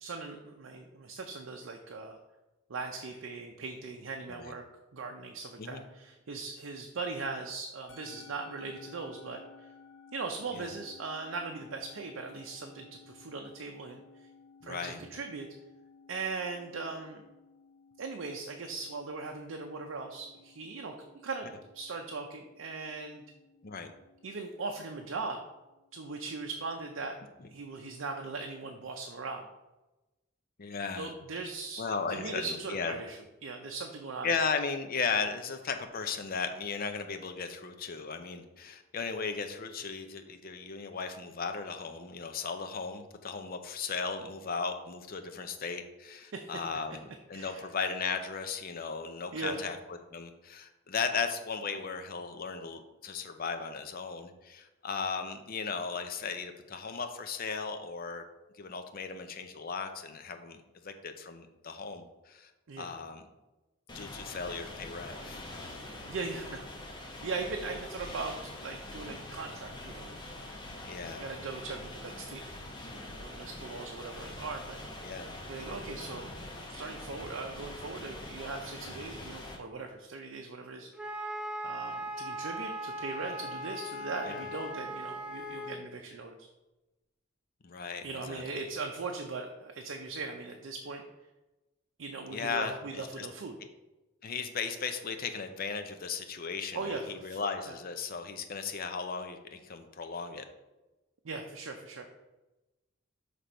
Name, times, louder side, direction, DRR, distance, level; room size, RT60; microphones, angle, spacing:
voice 1, 0.0-2.2 2.7-4.6 4.9-9.7 10.1-14.0 14.6-15.5 16.1-17.2 18.0-20.9 21.2-23.2 24.2-25.4 25.9-27.2 27.5-29.5 31.0-34.3 46.3-46.5 47.3-47.7 49.3-49.6 62.7-62.9 66.1-70.2 71.2-72.4 73.2-74.8 75.5-76.3 76.7-81.3 81.6-86.5 88.0-91.0 92.0-93.6 96.7-97.4 97.7-97.8 101.2-102.1, right 3 dB, 70° right, 3 dB, 0.5 m, -39 dB
Musical instrument, 7.9-26.4, left 5 dB, 80° left, 1.9 m, -57 dB
voice 2, 14.6-15.0 23.6-23.9 30.6-31.1 31.8-32.9 34.2-47.0 47.3-58.2 58.6-62.5 62.8-63.2 63.9-65.4 70.9-71.2 75.0-75.3 84.3-84.4 87.6-88.4 92.3-93.3 94.2-100.4, left 5 dB, 45° left, 7 dB, 0.6 m, -36 dB
sound 1, 63.9-79.6, left 1 dB, 25° left, 0.9 m, -44 dB
Wind instrument woodwind instrument, 81.0-85.8, equal, 5° right, 0.5 m, -39 dB
5.8 x 3.3 x 5.1 m, 1.1 s
head